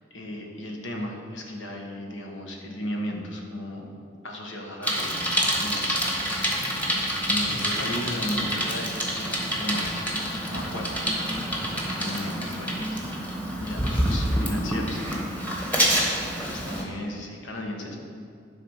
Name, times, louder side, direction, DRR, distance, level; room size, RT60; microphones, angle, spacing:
voice 1, 0.1-3.9 4.2-6.0 6.3-6.7 7.3-11.1 11.4-13.3 13.6-15.3 15.6-18.0, left 1 dB, 85° left, 1 dB, 1.4 m, -36 dB
Bicycle, 4.8-16.8, equal, 10° left, 1.3 m, -27 dB
10.5 x 4.0 x 6.4 m, 2.4 s
head